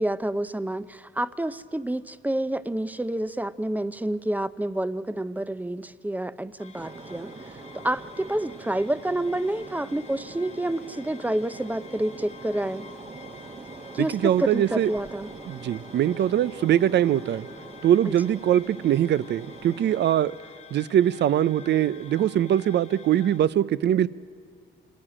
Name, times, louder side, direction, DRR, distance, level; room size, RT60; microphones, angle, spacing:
voice 1, 0.0-7.3 7.8-12.8 13.9-15.3 18.1-18.2, right 1 dB, 10° right, 14 dB, 0.6 m, -28 dB
sound 1, 6.6-23.4, left 6 dB, 35° left, 1.5 m, -50 dB
sound 2, 6.8-20.1, right 3 dB, 30° right, 1.3 m, -43 dB
voice 2, 14.0-14.9 15.5-17.5 17.8-20.4 20.7-24.1, right 11 dB, 60° right, 18 dB, 0.6 m, -22 dB
25.0 x 14.0 x 9.9 m, 2.1 s
cardioid pair, 90°, 20 cm